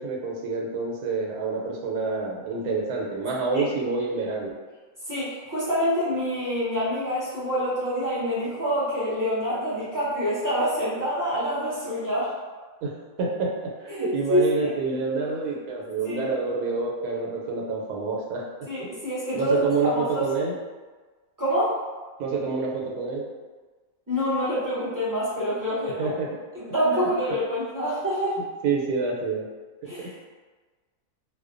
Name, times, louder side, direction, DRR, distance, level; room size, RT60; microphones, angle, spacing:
voice 1, 0.0-4.5 12.8-12.9 13.2-18.4 19.3-20.5 22.2-23.2 26.0-26.3 26.9-27.1 28.6-29.4 30.0-30.1, right 4 dB, 85° right, -2 dB, 1.1 m, -27 dB
voice 2, 5.1-12.3 13.9-14.7 16.0-16.2 18.7-20.3 21.4-21.7 24.1-26.1 26.5-28.4 29.9-30.1, equal, 25° right, -12 dB, 0.4 m, -26 dB
2.5 x 2.1 x 2.4 m, 1.4 s
omnidirectional pair, 1.6 m